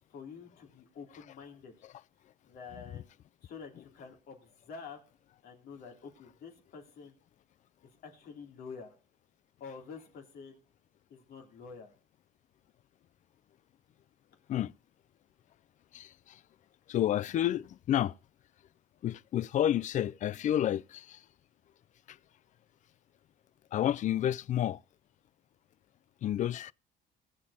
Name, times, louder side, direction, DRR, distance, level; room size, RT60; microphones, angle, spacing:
voice 1, 0.1-1.7 2.5-3.1 3.4-5.0 5.4-7.1 8.0-8.9 9.6-10.6 11.1-11.9, left 5 dB, 65° left, 3.0 m, -48 dB
voice 2, 16.9-18.1 19.0-21.2 23.7-24.8 26.2-26.7, left 11 dB, 45° left, 0.4 m, -30 dB
19.5 x 7.5 x 2.8 m
cardioid pair, 110°, 17 cm